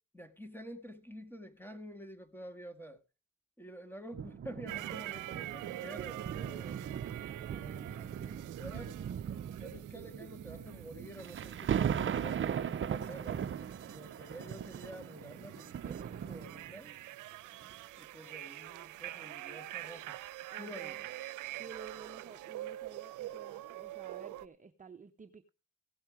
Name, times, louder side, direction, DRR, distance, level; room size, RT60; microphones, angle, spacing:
voice 1, 0.1-3.0 3.6-6.8 7.5-9.0 9.6-13.4 13.9-17.0 18.0-20.2 20.6-21.1, equal, 5° left, 2.0 m, -49 dB
sound 1, 4.1-16.9 17.6-17.7, right 8 dB, 40° right, 0.7 m, -39 dB
sound 2, 4.7-24.5, right 15 dB, 85° right, 0.7 m, -46 dB
voice 2, 20.5-21.0 21.6-25.5, right 5 dB, 25° right, 1.0 m, -52 dB
16.5 x 7.2 x 4.9 m
cardioid pair, 90°, 30 cm